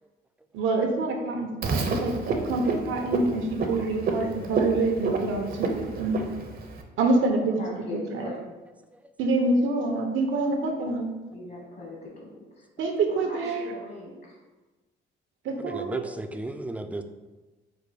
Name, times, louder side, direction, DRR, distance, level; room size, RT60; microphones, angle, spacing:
voice 1, 0.5-5.5 5.8-6.3 7.0-8.3 9.2-11.1 12.8-13.7 15.4-16.1, right 3 dB, 80° right, 3 dB, 0.8 m, -26 dB
Frog, 1.6-6.8, right 3 dB, 50° right, 0.7 m, -29 dB
voice 2, 7.6-8.4 11.3-12.6 13.1-14.3, left 2 dB, 50° left, -2 dB, 1.4 m, -40 dB
voice 3, 15.6-17.0, right 2 dB, 5° right, 7 dB, 0.4 m, -35 dB
5.0 x 2.2 x 4.8 m, 1.2 s
cardioid pair, 90°, 20 cm